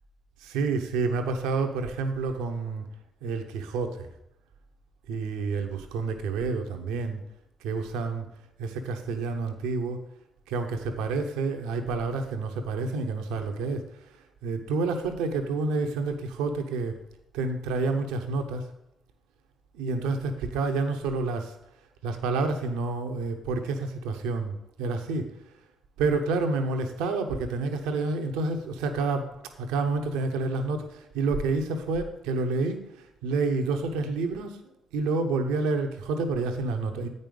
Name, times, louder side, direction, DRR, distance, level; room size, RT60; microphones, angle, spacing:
voice 1, 0.4-2.9 3.2-4.1 5.1-7.2 7.6-8.3 8.6-10.0 10.5-14.0 14.4-17.0 17.3-18.7 19.7-21.5 22.0-25.3 26.0-34.6 34.9-37.1, right 3 dB, 80° right, 6 dB, 0.8 m, -29 dB
8.9 x 5.4 x 5.2 m, 0.81 s
hypercardioid pair, 45°, 0 cm